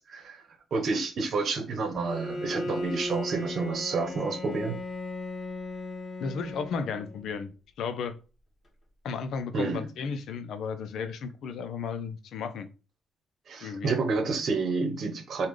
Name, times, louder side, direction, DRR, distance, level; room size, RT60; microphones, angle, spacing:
voice 1, 0.1-4.8 9.5-9.9 13.5-15.5, right 4 dB, 55° right, 0.9 m, -29 dB
Bowed string instrument, 2.0-7.4, left 2 dB, 30° left, 1.5 m, -37 dB
voice 2, 6.2-7.5 7.8-8.2 9.0-12.7 13.6-13.9, left 5 dB, 75° left, 0.5 m, -34 dB
3.7 x 2.3 x 3.1 m
cardioid pair, 90°, 0 cm